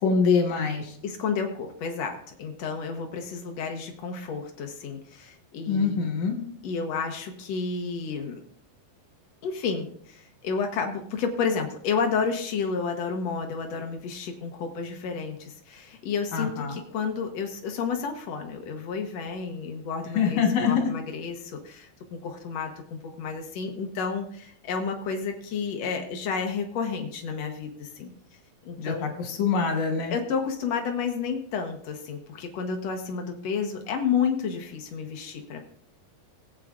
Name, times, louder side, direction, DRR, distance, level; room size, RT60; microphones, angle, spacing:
voice 1, 0.0-1.0 5.7-6.4 16.3-16.8 20.1-20.9 28.8-30.1, left 5 dB, 55° left, 2 dB, 2.7 m, -24 dB
voice 2, 1.0-6.2 6.6-8.3 9.4-28.1 28.6-29.1 30.1-35.6, left 5 dB, 70° left, 3 dB, 1.6 m, -31 dB
18.5 x 9.0 x 2.5 m, 0.63 s
omnidirectional pair, 4.5 m